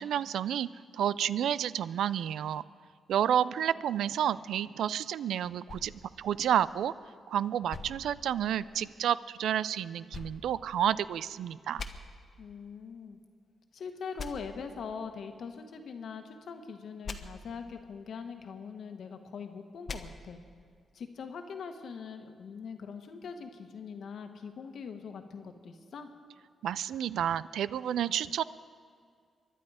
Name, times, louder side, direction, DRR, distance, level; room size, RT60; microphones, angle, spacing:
voice 1, 0.0-2.6 3.1-5.9 6.2-6.9 7.3-11.8 26.6-28.4, right 10 dB, 85° right, 17 dB, 0.3 m, -30 dB
sound 1, 5.7-7.1 7.7-8.9 10.1-11.3 11.8-11.9 14.2-14.3 17.0-17.2 19.9-20.0, left 4 dB, 50° left, 1.1 m, -43 dB
voice 2, 12.4-13.2 13.7-20.4 20.9-26.1, left 6 dB, 70° left, 6 dB, 1.4 m, -42 dB
24.0 x 11.0 x 4.9 m, 2.1 s
cardioid pair, 75°, 0 cm